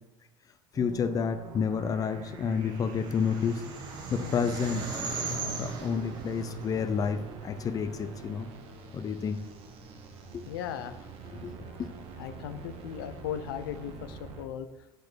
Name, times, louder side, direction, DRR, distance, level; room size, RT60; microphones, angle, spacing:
voice 1, 0.7-3.7 4.1-4.9 5.6-8.5 8.9-9.4 10.3-10.5 11.3-11.9, left 6 dB, 30° left, 10 dB, 0.6 m, -30 dB
sound 1, 0.7-14.5, right 5 dB, 55° right, 1.3 m, -45 dB
sound 2, 2.3-7.8, right 4 dB, 40° right, 1.9 m, -38 dB
voice 2, 10.5-10.9 12.2-14.7, left 10 dB, 85° left, 12 dB, 0.7 m, -37 dB
7.6 x 4.6 x 6.3 m, 1.0 s
supercardioid pair, 95°, 12 cm